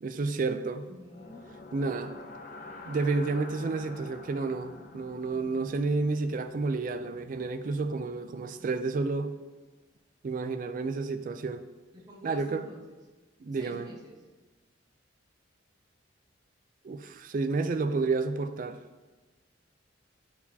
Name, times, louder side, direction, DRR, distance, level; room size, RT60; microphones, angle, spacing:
voice 1, 0.0-0.9 1.7-2.1 2.9-9.3 10.2-11.6 12.2-12.6 13.4-13.9 16.8-18.8, right 3 dB, 45° right, 9 dB, 0.3 m, -30 dB
voice 2, 0.8-1.4 11.9-13.0 13.5-14.2, right 1 dB, 20° right, -2 dB, 1.2 m, -49 dB
sound 1, 1.1-9.1, left 2 dB, 45° left, 0.6 m, -48 dB
9.1 x 4.7 x 2.7 m, 1.2 s
head